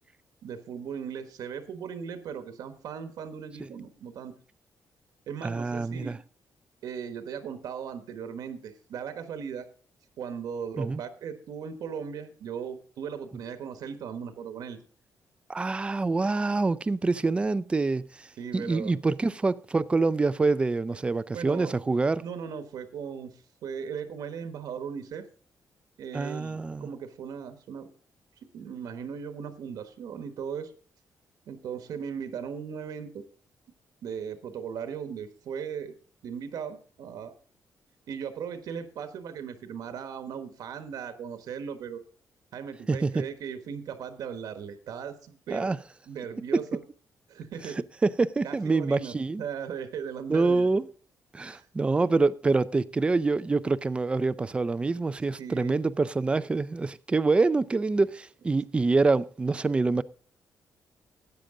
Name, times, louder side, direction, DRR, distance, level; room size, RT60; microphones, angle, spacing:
voice 1, 0.4-4.3 5.3-6.2 6.8-9.7 10.2-14.8 18.4-18.9 21.3-21.7 22.2-23.3 23.6-25.2 26.0-27.9 28.5-30.7 31.5-33.2 34.0-35.9 36.2-37.3 38.1-42.0 42.5-45.7 46.1-46.8 47.3-47.8 48.4-50.7 51.5-51.7 55.4-55.8, right 7 dB, 75° right, 1.3 m, -37 dB
voice 2, 5.4-6.2 10.8-11.0 15.5-18.3 18.5-22.2 26.1-26.9 42.9-43.3 45.5-45.8 48.0-49.4 50.3-50.9 51.3-60.0, right 3 dB, 15° right, 0.4 m, -26 dB
13.0 x 8.9 x 3.7 m
cardioid pair, 150°, 7 cm